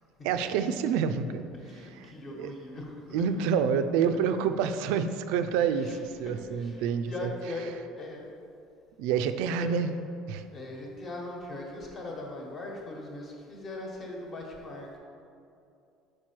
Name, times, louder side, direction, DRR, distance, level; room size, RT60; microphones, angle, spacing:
voice 1, 0.2-1.5 1.7-2.5 3.1-7.3 9.0-9.9 10.3-10.4, right 7 dB, 85° right, 10 dB, 0.3 m, -28 dB
voice 2, 1.5-3.2 5.7-6.0 6.2-8.3 9.6-9.7 10.5-15.0, left 2 dB, 30° left, 0 dB, 1.2 m, -40 dB
6.0 x 4.8 x 4.5 m, 2.6 s
cardioid pair, 140°, 0 cm